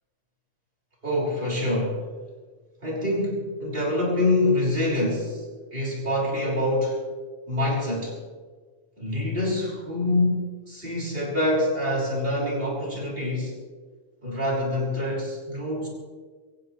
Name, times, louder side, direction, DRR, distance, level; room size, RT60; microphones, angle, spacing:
voice 1, 1.0-2.1 2.8-5.5 5.7-7.0 7.5-8.2 9.0-13.6 14.2-15.9, left 1 dB, 45° right, -4 dB, 6.2 m, -26 dB
25.5 x 15.5 x 3.3 m, 1.5 s
omnidirectional pair, 1.3 m